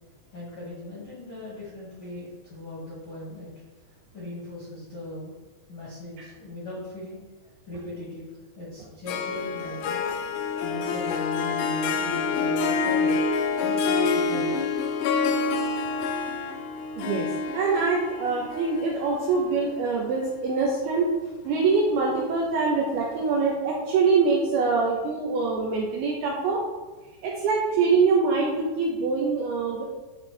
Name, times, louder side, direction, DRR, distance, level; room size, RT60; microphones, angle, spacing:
voice 1, 0.3-3.6 4.1-5.4 5.7-8.3 8.5-10.1 10.6-13.3 13.6-14.7 15.7-16.2, left 2 dB, 50° left, -8 dB, 1.6 m, -39 dB
Harp, 9.1-20.5, left 4 dB, 80° left, 2.5 m, -27 dB
voice 2, 17.0-17.3 17.5-21.1 21.5-26.6 27.2-29.8, right 4 dB, 75° right, -3 dB, 2.4 m, -24 dB
10.5 x 4.4 x 3.4 m, 1.2 s
omnidirectional pair, 5.4 m